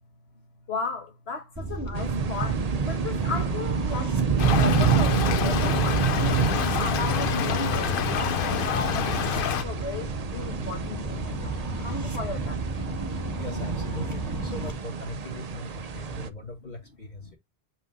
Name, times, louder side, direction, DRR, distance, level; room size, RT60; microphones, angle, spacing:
voice 1, 0.7-4.2 4.5-11.6 11.8-12.6 17.2-17.3, left 4 dB, 80° left, 1.5 m, -35 dB
sound 1, 1.6-14.7, right 1 dB, 15° right, 2.1 m, -34 dB
sound 2, 1.9-16.3, right 6 dB, 45° right, 0.7 m, -28 dB
Stream / Trickle dribble, 4.4-9.6, left 8 dB, 60° left, 0.8 m, -27 dB
voice 2, 13.4-17.4, left 2 dB, 45° left, 1.9 m, -40 dB
7.2 x 5.7 x 2.6 m
omnidirectional pair, 1.1 m